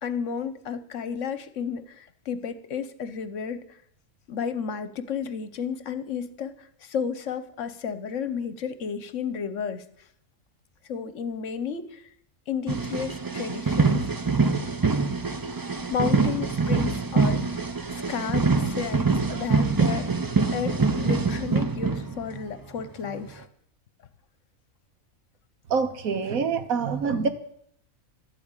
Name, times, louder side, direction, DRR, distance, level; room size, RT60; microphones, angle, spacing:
voice 1, 0.0-3.6 4.3-9.8 10.9-12.0 12.5-14.0 15.9-17.5 17.9-20.1 20.5-23.5, left 7 dB, 65° left, 13 dB, 1.2 m, -32 dB
sound 1, 12.7-22.6 23.1-23.3, right 4 dB, 30° right, 0.4 m, -25 dB
voice 2, 25.7-27.3, right 5 dB, 85° right, 9 dB, 1.6 m, -25 dB
12.5 x 8.4 x 8.9 m, 0.71 s
omnidirectional pair, 1.4 m